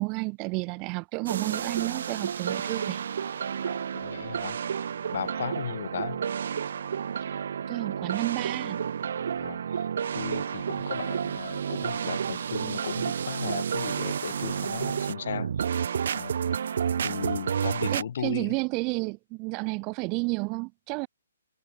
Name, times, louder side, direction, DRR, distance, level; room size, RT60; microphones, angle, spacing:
voice 1, 0.0-3.1 7.2-7.4 7.7-8.8 17.9-21.1, right 30 dB, 20° right, 3.0 m, -31 dB
sound 1, 1.3-18.0, right 7 dB, 50° right, 3.6 m, -31 dB
voice 2, 3.6-4.9 5.1-6.2 9.3-9.9 10.1-15.7 16.1-16.3 17.0-18.5, left 8 dB, 45° left, 4.3 m, -36 dB
hypercardioid pair, 175°, 0 cm